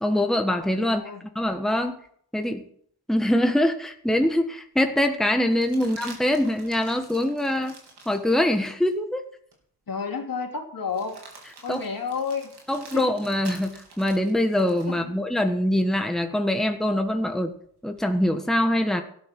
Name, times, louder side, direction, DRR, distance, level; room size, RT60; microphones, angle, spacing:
voice 1, 0.0-1.0 1.3-2.0 2.3-2.6 3.1-7.8 8.0-9.2 11.7-11.8 12.7-17.5 17.8-19.0, left 1 dB, ahead, 5 dB, 1.4 m, -23 dB
voice 2, 0.8-1.2 9.9-11.2 11.6-12.5 12.9-13.1 14.9-15.2, left 5 dB, 60° left, 2 dB, 3.0 m, -31 dB
sound 1, 3.9-4.0 5.5-9.0 9.5-9.6 10.9-15.0 17.2-18.0, right 3 dB, 85° right, 3.5 m, -48 dB
13.5 x 10.5 x 6.1 m, 0.62 s
cardioid pair, 60°, 39 cm